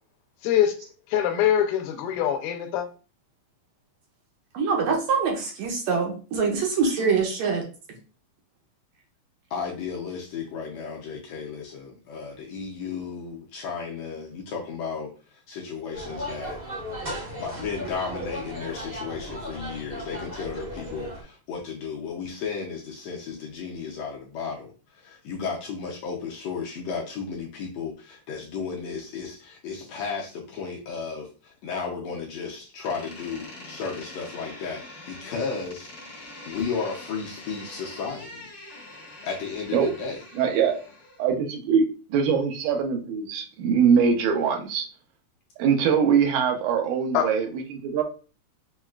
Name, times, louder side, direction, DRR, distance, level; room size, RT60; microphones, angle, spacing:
voice 1, 0.4-0.7 1.1-2.9 47.1-47.3, left 10 dB, 90° left, 2.1 m, -23 dB
voice 2, 4.5-7.6, right 5 dB, 75° right, 1.8 m, -24 dB
voice 3, 9.5-16.6 17.3-35.9 36.4-38.5 39.2-40.2, left 5 dB, 75° left, 1.6 m, -34 dB
sound 1, 15.9-21.2, equal, 50° right, 0.6 m, -36 dB
Door, 32.8-41.3, left 2 dB, 55° left, 1.0 m, -44 dB
voice 4, 40.4-40.8 41.2-41.8 42.1-44.9 45.6-48.0, right 6 dB, 90° right, 2.1 m, -22 dB
6.2 x 2.3 x 2.3 m
omnidirectional pair, 3.6 m